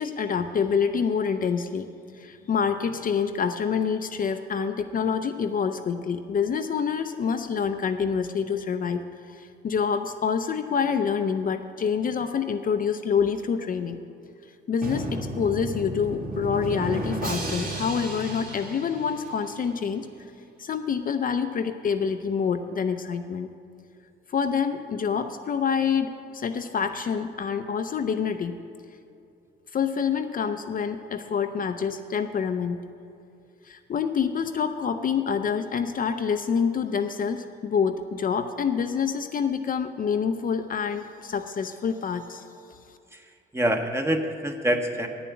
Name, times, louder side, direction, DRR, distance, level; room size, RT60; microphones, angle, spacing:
voice 1, 0.0-1.9 2.1-14.0 14.7-20.1 20.6-23.5 24.3-28.6 29.7-32.8 33.6-42.5, left 6 dB, 45° left, 7 dB, 0.6 m, -27 dB
Drum, 14.8-19.7, right 1 dB, 45° right, 2.2 m, -33 dB
voice 2, 43.1-45.1, right 1 dB, 15° right, 5 dB, 1.0 m, -26 dB
9.0 x 7.1 x 8.5 m, 2.6 s
cardioid pair, 90°, 20 cm